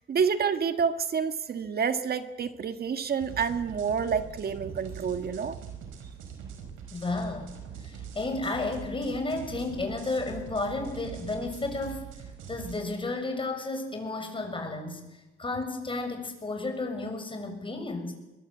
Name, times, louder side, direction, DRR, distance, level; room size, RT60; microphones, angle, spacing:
voice 1, 0.1-5.6, right 6 dB, 50° right, 9 dB, 1.7 m, -28 dB
sound 1, 3.2-12.8, right 7 dB, 90° right, 4.7 m, -43 dB
voice 2, 6.9-7.5 7.8-12.1 12.5-18.1, left 2 dB, 25° left, 5 dB, 6.8 m, -32 dB
22.0 x 21.5 x 8.3 m, 1.0 s
cardioid pair, 90°, 20 cm